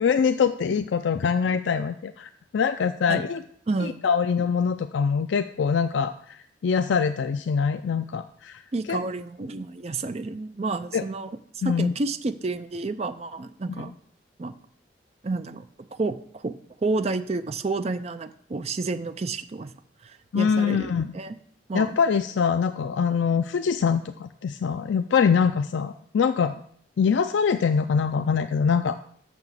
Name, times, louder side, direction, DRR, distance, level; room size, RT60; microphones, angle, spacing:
voice 1, 0.0-3.4 3.8-8.6 8.9-9.0 10.9-11.0 11.6-11.9 13.8-13.9 20.3-21.1 21.7-26.6 27.0-29.0, left 6 dB, 75° left, 9 dB, 0.4 m, -24 dB
voice 2, 3.7-4.0 8.7-11.4 11.6-13.9 14.4-14.5 15.2-15.7 15.9-16.5 16.8-19.7 20.0-21.4 21.7-22.0, right 3 dB, 35° right, 10 dB, 0.4 m, -30 dB
6.7 x 5.9 x 7.4 m, 0.64 s
head